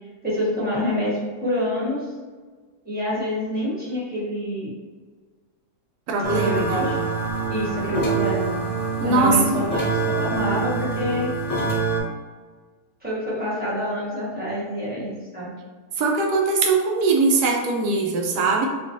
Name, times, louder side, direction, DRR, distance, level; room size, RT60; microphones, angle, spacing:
voice 1, 0.2-2.1 2.8-4.7 6.3-7.0 7.5-8.5 9.0-11.3 13.0-15.5, equal, 5° right, -8 dB, 0.9 m, -26 dB
voice 2, 6.1-6.9 9.0-9.6 16.0-18.7, right 3 dB, 70° right, 1 dB, 1.2 m, -21 dB
sound 1, 6.2-12.0, right 4 dB, 55° left, 0.4 m, -25 dB
4.4 x 2.4 x 2.6 m, 1.4 s
omnidirectional pair, 1.8 m